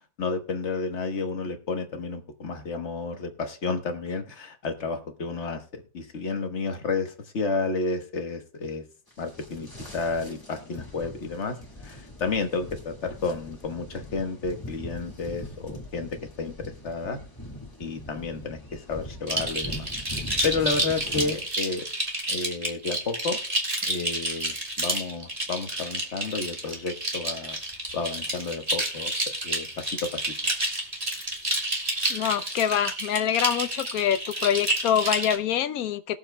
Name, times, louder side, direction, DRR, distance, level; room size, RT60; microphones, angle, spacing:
voice 1, 0.2-8.8 9.2-11.6 11.8-17.2 17.8-19.9 20.4-21.8 22.3-23.4 23.8-27.6 27.9-29.1 29.4-30.3 33.4-33.5, left 4 dB, 50° left, 1.4 m, -31 dB
sound 1, 9.1-21.5, left 1 dB, 15° left, 1.7 m, -41 dB
sound 2, 19.3-35.4, right 1 dB, 25° right, 1.8 m, -30 dB
voice 2, 32.1-36.2, left 9 dB, 70° left, 1.0 m, -25 dB
20.5 x 7.2 x 2.2 m
omnidirectional pair, 1.7 m